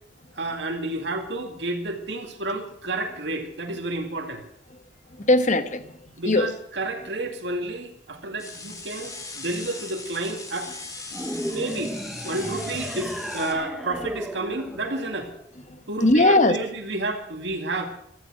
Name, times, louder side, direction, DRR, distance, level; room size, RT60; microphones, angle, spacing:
voice 1, 0.4-4.4 6.2-10.7 11.5-12.0 12.2-15.3 15.9-17.9, right 2 dB, 70° right, 3 dB, 2.3 m, -30 dB
voice 2, 5.1-6.5 11.2-11.3 15.7-16.6, left 2 dB, 40° left, 10 dB, 1.1 m, -21 dB
sound 1, 8.4-13.5, left 3 dB, 20° left, 2.6 m, -39 dB
sound 2, 11.1-15.6, equal, ahead, 1.1 m, -34 dB
15.5 x 13.5 x 6.3 m, 0.71 s
head